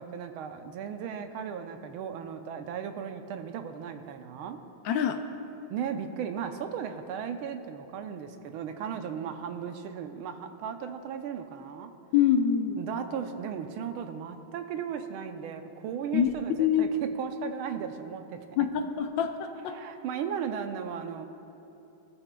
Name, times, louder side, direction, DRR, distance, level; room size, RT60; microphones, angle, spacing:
voice 1, 0.0-4.6 5.7-11.9 12.8-18.4 19.7-21.3, right 7 dB, 85° right, 7 dB, 1.5 m, -36 dB
voice 2, 4.8-5.2 12.1-12.8 16.1-16.3 16.6-16.9 18.6-19.8, left 8 dB, 75° left, 7 dB, 1.2 m, -25 dB
18.0 x 13.5 x 2.3 m, 2.9 s
omnidirectional pair, 2.3 m